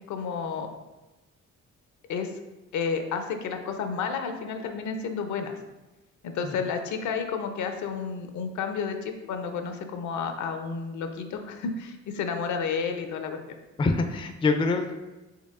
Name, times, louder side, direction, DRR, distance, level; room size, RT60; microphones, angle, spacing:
voice 1, 0.1-0.7 2.1-2.3 2.7-5.6 6.2-13.4, left 5 dB, 70° left, 6 dB, 0.5 m, -31 dB
voice 2, 13.8-14.9, left 3 dB, 20° left, 6 dB, 0.3 m, -25 dB
4.5 x 3.3 x 2.4 m, 1.1 s
cardioid pair, 90°, 30 cm